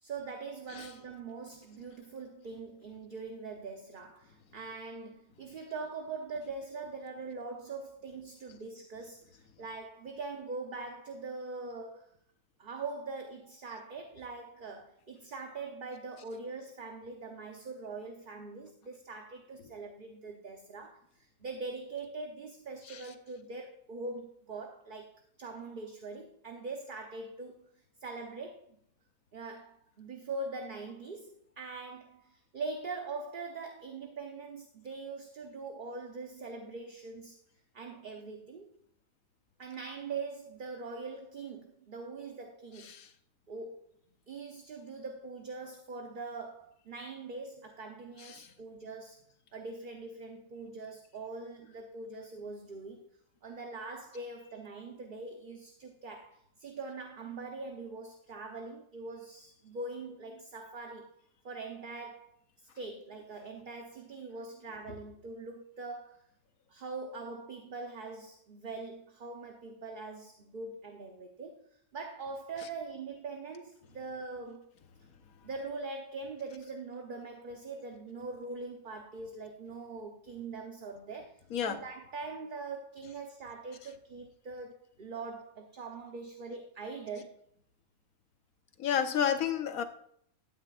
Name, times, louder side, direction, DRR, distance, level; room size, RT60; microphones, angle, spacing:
voice 1, 0.0-12.1 12.6-27.7 28.0-28.8 29.3-37.4 37.7-38.7 39.6-42.9 43.5-44.0 44.3-49.2 49.5-53.1 53.4-61.2 61.4-66.2 66.7-74.7 75.4-87.4, right 3 dB, 40° right, 0.9 m, -42 dB
voice 2, 42.8-43.1 48.2-48.5 81.5-81.8 88.8-89.8, left 8 dB, 80° left, 1.3 m, -31 dB
12.5 x 9.4 x 2.4 m
omnidirectional pair, 1.5 m